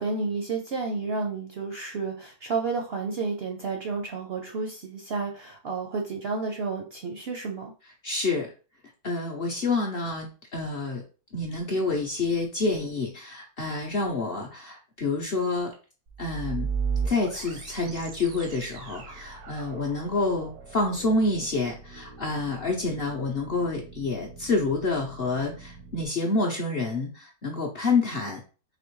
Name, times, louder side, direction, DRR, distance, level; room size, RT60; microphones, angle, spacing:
voice 1, 0.0-7.7, right 4 dB, 60° right, 2 dB, 0.6 m, -31 dB
voice 2, 8.0-8.5 9.0-11.0 11.3-15.7 16.2-16.7 17.0-28.4, left 3 dB, 50° left, 0 dB, 0.7 m, -28 dB
sound 1, 16.1-26.1, right 5 dB, 80° right, 1.2 m, -37 dB
4.1 x 2.9 x 3.1 m, 0.35 s
omnidirectional pair, 1.6 m